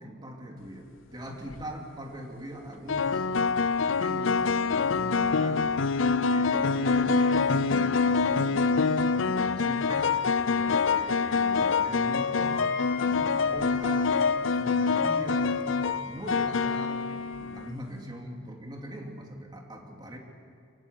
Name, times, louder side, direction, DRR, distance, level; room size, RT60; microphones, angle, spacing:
voice 1, 0.0-3.3 3.9-5.8 6.3-10.2 10.6-12.7 13.0-14.1 14.4-15.7 16.0-20.2, equal, 20° right, 1 dB, 2.7 m, -41 dB
sound 1, 1.3-1.6 2.9-17.7, left 4 dB, 75° left, 0.6 m, -25 dB
Wind instrument woodwind instrument, 12.4-17.4, left 7 dB, 40° left, 4.7 m, -44 dB
24.5 x 17.5 x 8.5 m, 2.6 s
head